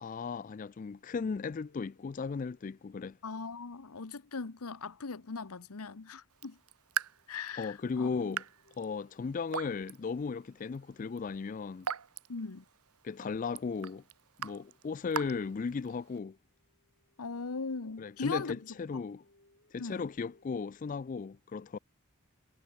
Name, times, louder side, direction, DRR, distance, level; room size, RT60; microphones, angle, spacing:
voice 1, 0.0-3.2 7.6-8.5 8.8-11.9 13.0-14.0 14.4-16.4 18.0-19.2 19.7-21.8, left 5 dB, 35° left, 0.3 m, -36 dB
voice 2, 3.2-6.6 7.3-8.3 12.3-12.6 17.2-18.6 19.8-20.1, left 4 dB, 80° left, 1.0 m, -39 dB
Raindrop / Drip, 6.3-16.2, right 7 dB, 85° right, 1.1 m, -43 dB
sound 1, 6.9-12.5 13.3-13.4 13.7-13.9 14.5-14.6 14.8-15.0 15.3-20.4, left 1 dB, 55° left, 7.8 m, -71 dB
head